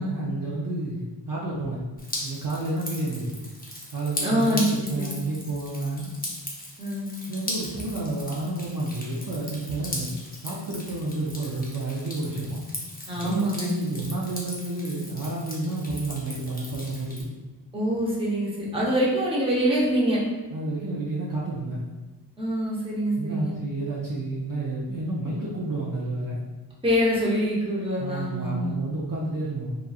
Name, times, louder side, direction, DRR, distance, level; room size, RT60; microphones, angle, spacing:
voice 1, 0.0-1.8 2.2-3.3 3.9-6.1 7.3-10.1 10.4-12.6 13.1-17.3 20.5-21.9 23.2-26.4 28.0-29.8, right 2 dB, 50° right, -5 dB, 0.5 m, -30 dB
Drip, 2.0-17.2, left 1 dB, 20° left, 0.6 m, -38 dB
voice 2, 4.2-5.2 6.8-7.1 13.1-13.8 17.7-20.2 22.4-23.5 26.8-28.8, equal, 15° right, -6 dB, 0.7 m, -25 dB
3.0 x 2.4 x 2.3 m, 1.2 s
wide cardioid pair, 65°, 43 cm